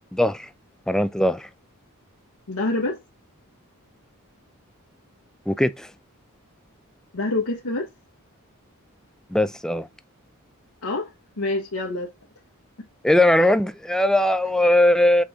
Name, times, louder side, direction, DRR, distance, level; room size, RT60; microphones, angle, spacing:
voice 1, 0.1-0.5 0.9-1.5 5.5-5.9 9.3-9.9 13.0-15.2, left 1 dB, 5° left, 0.4 m, -19 dB
voice 2, 2.5-3.0 7.1-7.9 10.8-11.1 11.4-12.1, left 2 dB, 90° left, 1.3 m, -26 dB
6.1 x 4.2 x 3.6 m
head